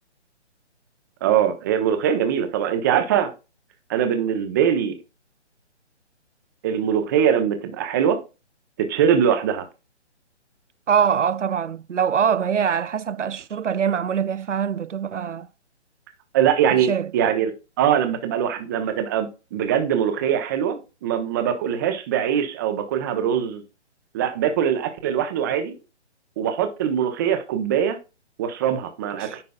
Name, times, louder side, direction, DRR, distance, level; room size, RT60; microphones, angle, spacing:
voice 1, 1.2-3.3 3.9-5.0 6.6-8.2 8.8-9.6 16.3-23.6 24.1-25.8 26.4-28.0 28.4-29.4, right 9 dB, 15° right, 0.7 m, -22 dB
voice 2, 10.9-15.5 16.8-17.1 29.2-29.4, right 7 dB, 90° right, 0.5 m, -23 dB
9.6 x 5.3 x 2.2 m
figure-of-eight pair, 145°, 35 cm